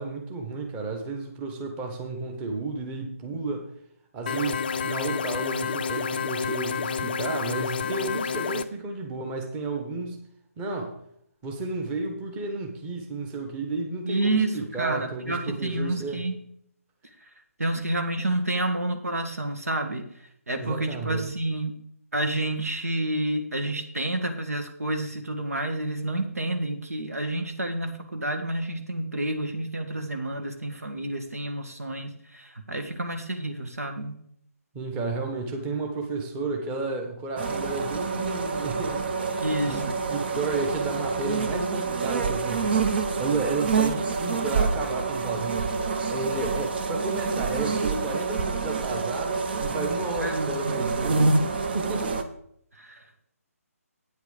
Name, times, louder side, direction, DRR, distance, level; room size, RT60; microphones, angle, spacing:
voice 1, 0.0-3.7 4.1-10.2 10.6-11.0 11.4-16.2 20.6-21.2 34.7-39.8 40.1-45.7 46.1-51.3 51.7-52.1, right 3 dB, 15° right, 3 dB, 1.2 m, -32 dB
sound 1, 4.3-8.6, left 6 dB, 35° left, 0.5 m, -29 dB
voice 2, 14.1-16.4 17.6-20.0 20.5-21.7 22.1-34.2 39.4-40.0 50.2-51.0 52.7-53.0, right 1 dB, 70° right, 5 dB, 1.9 m, -29 dB
sound 2, 37.4-52.2, right 4 dB, 40° right, 0.9 m, -27 dB
9.1 x 8.1 x 5.0 m, 0.70 s
figure-of-eight pair, 145°, 8 cm